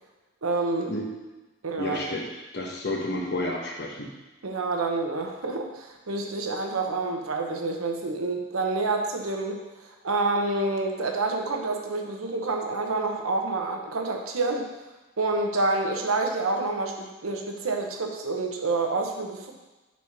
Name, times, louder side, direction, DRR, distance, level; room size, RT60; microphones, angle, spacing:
voice 1, 0.4-0.9 1.6-2.1 4.4-9.6 10.0-14.7 15.2-19.5, right 3 dB, 85° right, 2 dB, 0.9 m, -28 dB
voice 2, 1.8-4.1, left 1 dB, 50° left, 0 dB, 1.0 m, -31 dB
4.6 x 4.2 x 5.8 m, 1.2 s
head